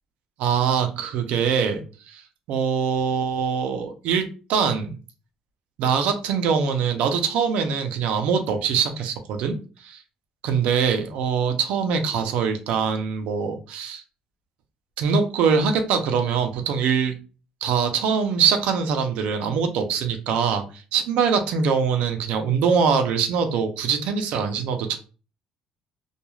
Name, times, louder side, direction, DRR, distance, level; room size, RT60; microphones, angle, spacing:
voice 1, 0.4-2.2 2.5-5.0 5.8-10.0 10.4-14.0 15.0-17.1 17.6-25.0, right 6 dB, 75° right, 6 dB, 0.5 m, -23 dB
2.3 x 2.3 x 3.0 m, 0.35 s
cardioid pair, 170°, 2 cm